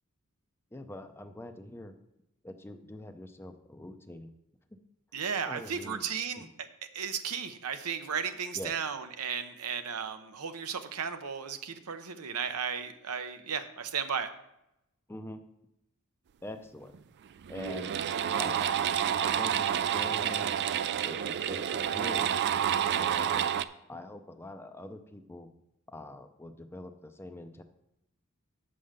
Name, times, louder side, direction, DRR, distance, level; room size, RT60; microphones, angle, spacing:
voice 1, 0.7-1.9 2.4-4.3 5.4-6.0 6.3-6.5 8.5-8.8 15.1-15.4 16.4-16.9 17.5-18.0 18.4-18.9 19.2-20.5 21.0-22.3 23.0-23.5 23.9-25.5 25.9-27.6, left 1 dB, 10° left, 7 dB, 0.5 m, -44 dB
voice 2, 5.1-6.5 6.9-14.3, right 6 dB, 80° right, 9 dB, 0.8 m, -34 dB
sound 1, 16.9-17.0 17.4-23.6, right 9 dB, 50° right, 0.3 m, -29 dB
7.4 x 5.4 x 6.6 m, 0.85 s
head